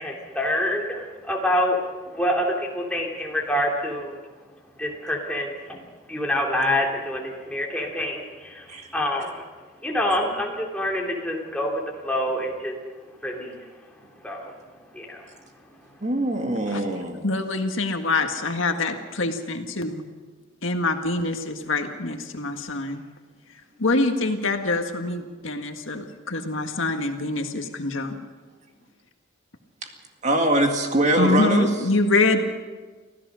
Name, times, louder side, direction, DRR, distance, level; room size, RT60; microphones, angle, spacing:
voice 1, 0.0-4.3 4.7-9.5 9.8-12.8 13.2-16.0, left 1 dB, 5° left, -2 dB, 3.2 m, -27 dB
voice 2, 16.0-17.3 29.8-29.9 30.2-31.7, right 1 dB, 35° right, 3 dB, 2.1 m, -23 dB
voice 3, 17.2-20.0 20.6-23.0 23.5-28.2 31.2-32.4, left 2 dB, 70° left, 5 dB, 1.8 m, -25 dB
26.0 x 16.0 x 6.4 m, 1.4 s
head